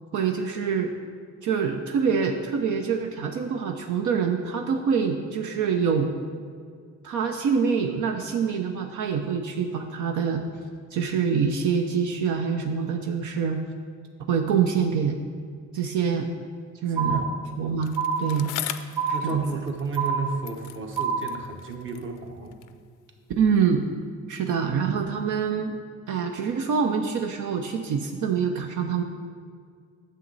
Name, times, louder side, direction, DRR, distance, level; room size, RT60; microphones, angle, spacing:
voice 1, 0.1-0.9 1.4-6.1 7.0-10.4 10.9-13.6 14.3-15.2 15.7-16.3 16.8-17.3 17.6-18.5 19.2-19.4 23.4-23.8 24.3-25.8 26.1-29.0, right 6 dB, 75° right, 4 dB, 0.6 m, -25 dB
voice 2, 16.9-17.4 19.1-22.6, right 4 dB, 40° right, 4 dB, 1.1 m, -33 dB
sound 1, 17.0-17.6 18.0-18.6 19.0-19.6 20.0-20.6 21.0-21.6, right 5 dB, 5° right, 0.7 m, -28 dB
Bicycle, 17.8-20.2 20.4-22.8 23.6-23.7, left 12 dB, 85° left, 0.5 m, -39 dB
9.2 x 7.0 x 4.0 m, 2.1 s
cardioid pair, 90°, 30 cm